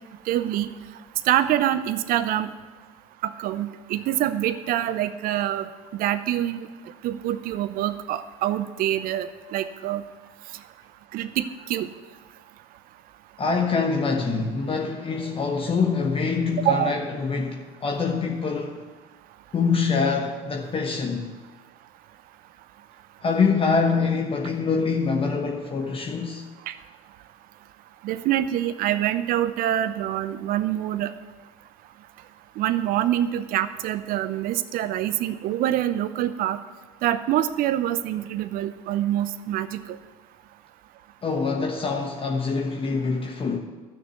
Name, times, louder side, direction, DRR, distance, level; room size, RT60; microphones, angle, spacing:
voice 1, 0.3-0.7 1.3-2.5 3.2-5.7 5.9-6.7 7.0-10.0 11.1-11.9 16.6-16.9 26.7-26.8 28.0-31.1 32.6-36.6 37.0-40.0, right 12 dB, 55° right, 0.7 m, -25 dB
voice 2, 13.4-18.9 19.5-21.3 23.2-26.5 41.2-43.6, left 4 dB, 30° left, 1.2 m, -25 dB
12.5 x 6.5 x 8.3 m
hypercardioid pair, 70°, 18 cm